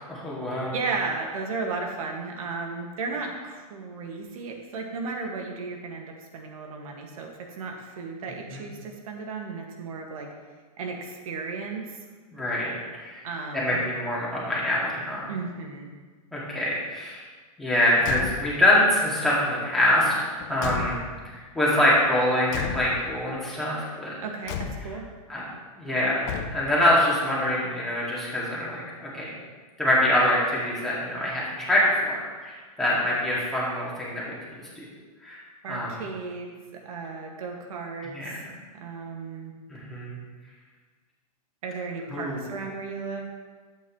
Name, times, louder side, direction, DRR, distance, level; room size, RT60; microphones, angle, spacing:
voice 1, 0.1-0.7 8.5-8.6 12.3-12.7 13.0-13.2 13.5-15.3 16.3-17.2 17.6-20.1 20.5-21.0 21.2-24.2 25.3-25.4 25.8-29.3 29.8-34.3 34.8-34.9 35.2-35.4 35.7-35.9 38.1-38.5 39.7-40.2 42.1-42.4, left 1 dB, ahead, -8 dB, 2.2 m, -25 dB
voice 2, 0.7-10.3 10.8-12.0 13.2-13.8 15.3-15.9 24.2-25.1 35.6-38.4 38.7-39.5 41.6-43.3, right 4 dB, 65° right, 1 dB, 1.9 m, -34 dB
Car / Truck / Slam, 18.0-18.7 20.0-21.4 22.5-23.3 24.5-25.1 26.2-26.9, left 7 dB, 30° left, 0.6 m, -34 dB
12.0 x 8.5 x 3.2 m, 1.4 s
supercardioid pair, 165°, 19 cm